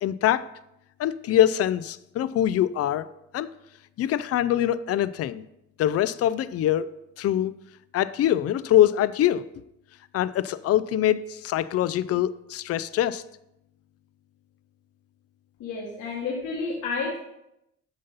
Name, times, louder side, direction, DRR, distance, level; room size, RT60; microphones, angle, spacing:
voice 1, 0.0-0.5 1.0-3.1 3.3-3.5 4.0-5.5 5.8-6.9 7.2-7.5 7.9-9.5 10.1-13.2, left 11 dB, 55° left, 16 dB, 0.4 m, -23 dB
voice 2, 15.6-17.2, left 4 dB, 80° left, -3 dB, 1.5 m, -30 dB
7.9 x 5.2 x 4.0 m, 0.83 s
cardioid pair, 90°, 30 cm